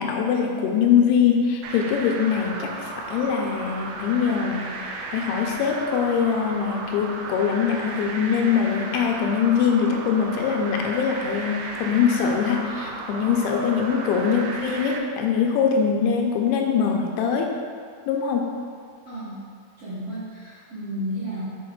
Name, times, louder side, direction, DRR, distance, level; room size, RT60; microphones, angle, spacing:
voice 1, 0.0-4.7 5.1-17.6 18.1-18.6, left 7 dB, 85° left, 1 dB, 2.4 m, -23 dB
sound 1, 1.6-15.0, right 3 dB, 80° right, 2.4 m, -35 dB
voice 2, 19.0-19.4 19.8-21.4, equal, 60° right, -12 dB, 1.5 m, -33 dB
7.3 x 4.6 x 4.5 m, 2.1 s
omnidirectional pair, 4.6 m